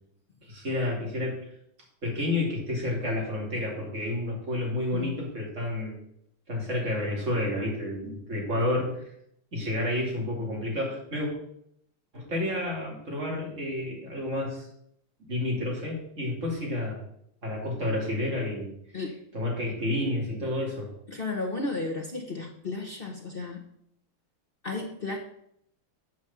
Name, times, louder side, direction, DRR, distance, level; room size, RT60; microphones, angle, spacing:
voice 1, 0.4-1.4 2.0-6.0 6.5-9.1 9.5-11.3 12.1-14.7 15.3-17.0 17.4-18.7 19.0-20.9, left 1 dB, 35° right, -2 dB, 2.8 m, -30 dB
voice 2, 21.1-23.6 24.6-25.2, left 3 dB, 75° left, 1 dB, 0.5 m, -33 dB
8.3 x 4.7 x 6.9 m, 0.72 s
omnidirectional pair, 2.4 m